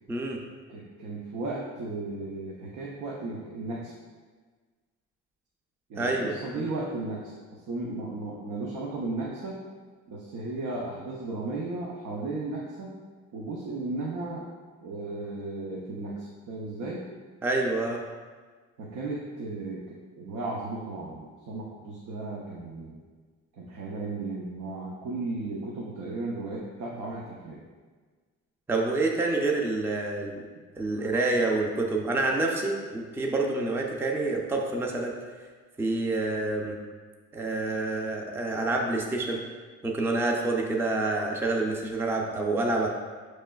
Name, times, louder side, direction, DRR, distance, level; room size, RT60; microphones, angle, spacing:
voice 1, 0.1-0.4 6.0-6.4 17.4-18.0 28.7-30.4 30.8-35.2 35.8-36.8 37.3-39.4 39.8-42.9, right 2 dB, 10° right, 0 dB, 0.4 m, -27 dB
voice 2, 0.7-3.9 5.9-9.6 10.1-12.9 13.3-14.5 14.8-17.0 18.8-23.0 23.5-27.6, right 2 dB, 90° right, -3 dB, 0.6 m, -35 dB
5.2 x 3.1 x 2.2 m, 1.5 s
cardioid pair, 90°, 30 cm